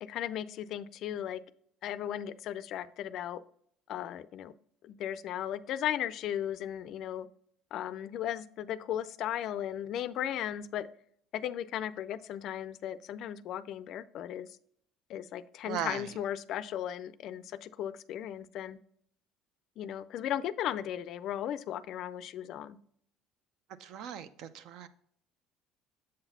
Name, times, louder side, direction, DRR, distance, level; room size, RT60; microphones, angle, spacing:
voice 1, 0.0-1.4 1.8-3.4 3.9-4.5 4.8-7.3 7.7-10.9 11.3-14.6 15.1-18.8 19.8-22.8, left 10 dB, 55° left, 16 dB, 0.3 m, -36 dB
voice 2, 15.7-16.1 23.8-24.9, right 9 dB, 65° right, 13 dB, 0.5 m, -38 dB
7.6 x 4.0 x 4.0 m, 0.66 s
cardioid pair, 135°, 0 cm